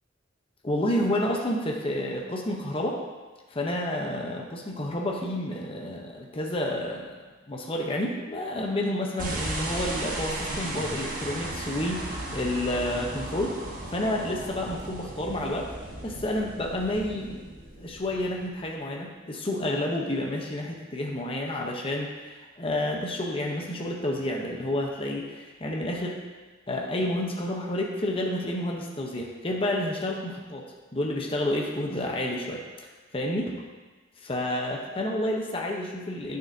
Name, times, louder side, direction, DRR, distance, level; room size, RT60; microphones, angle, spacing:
voice 1, 0.6-3.0 3.5-7.2 7.5-12.0 12.3-13.6 13.9-15.7 16.0-17.4 17.8-26.2 26.7-32.6 33.1-33.5 34.2-36.4, left 1 dB, 30° left, 0 dB, 0.7 m, -30 dB
sound 1, 9.2-18.6, right 1 dB, 45° right, 1.2 m, -36 dB
8.9 x 6.6 x 2.7 m, 1.3 s
head